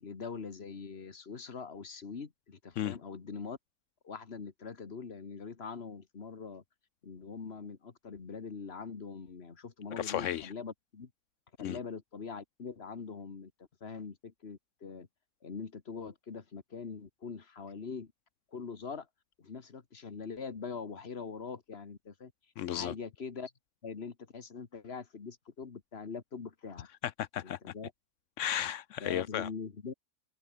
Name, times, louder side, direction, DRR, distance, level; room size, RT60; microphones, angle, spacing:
voice 1, 0.0-3.6 4.0-6.6 7.0-11.1 11.6-13.5 13.8-15.1 15.4-18.1 18.5-19.1 19.4-22.3 22.7-23.5 23.8-26.9 27.4-27.9 29.0-29.9, left 5 dB, 45° left, 1.9 m, -43 dB
voice 2, 10.0-10.5 11.6-11.8 22.6-22.9 27.0-27.6 28.4-29.5, left 11 dB, 65° left, 0.8 m, -34 dB
omnidirectional pair, 1.6 m